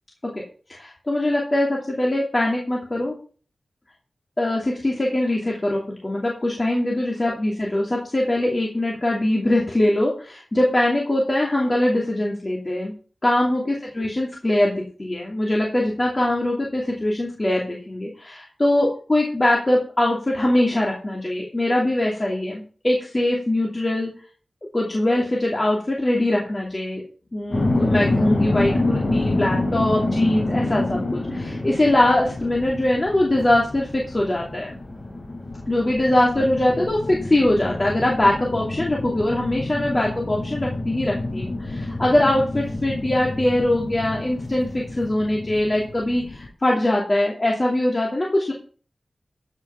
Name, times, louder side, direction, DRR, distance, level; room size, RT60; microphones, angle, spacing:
voice 1, 0.7-3.1 4.4-12.9 13.2-24.1 24.7-27.0 27.3-34.8 35.7-48.5, left 1 dB, 30° left, -2 dB, 2.7 m, -22 dB
sound 1, 27.5-46.5, left 2 dB, 50° left, 4.4 m, -27 dB
14.5 x 5.8 x 5.8 m, 0.41 s
wide cardioid pair, 80°, 0 cm